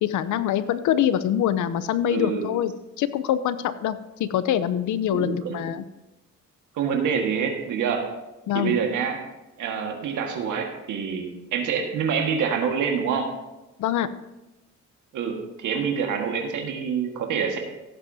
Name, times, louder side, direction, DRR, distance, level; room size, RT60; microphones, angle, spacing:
voice 1, 0.0-5.8 8.5-8.8 13.8-14.1, left 10 dB, 80° left, 14 dB, 0.7 m, -24 dB
voice 2, 2.1-2.5 5.1-5.6 6.8-8.1 8.5-9.2 9.6-13.3 15.1-17.6, right 6 dB, 80° right, 2 dB, 1.7 m, -26 dB
16.0 x 8.3 x 2.8 m, 1.0 s
cardioid pair, 90°, 30 cm